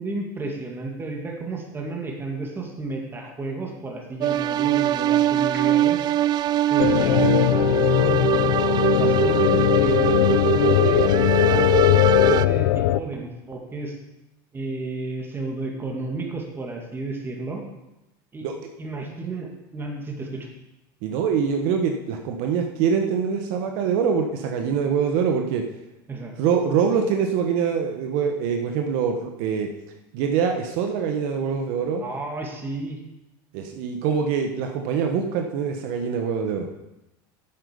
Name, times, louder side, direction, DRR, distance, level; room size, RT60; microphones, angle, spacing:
voice 1, 0.0-6.1 6.7-8.3 8.9-14.0 14.5-17.6 18.3-18.5 18.8-20.5 26.1-26.3 32.0-33.0, right 2 dB, 20° right, 1 dB, 2.3 m, -32 dB
sound 1, 4.2-12.5, right 12 dB, 35° right, 0.3 m, -22 dB
sound 2, 6.8-13.0, left 15 dB, 85° left, 0.4 m, -19 dB
voice 2, 21.0-25.6 26.4-29.7 30.1-32.0 33.5-36.7, right 6 dB, 65° right, 4 dB, 1.2 m, -24 dB
10.0 x 7.9 x 5.3 m, 0.95 s
supercardioid pair, 120°, 12 cm